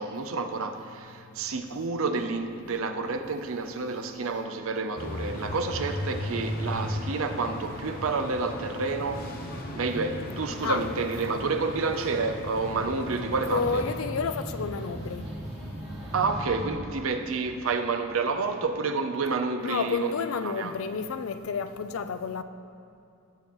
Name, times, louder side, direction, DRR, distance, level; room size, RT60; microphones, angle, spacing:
voice 1, 0.0-9.3 9.8-13.8 16.1-20.1 20.4-20.7, right 4 dB, 70° right, 0.6 m, -29 dB
sound 1, 5.0-14.0, left 1 dB, 40° left, 0.9 m, -36 dB
sound 2, 11.7-16.7, equal, 30° right, 2.3 m, -39 dB
voice 2, 13.5-15.3 19.6-22.4, left 5 dB, 70° left, 0.4 m, -30 dB
16.5 x 6.9 x 3.1 m
head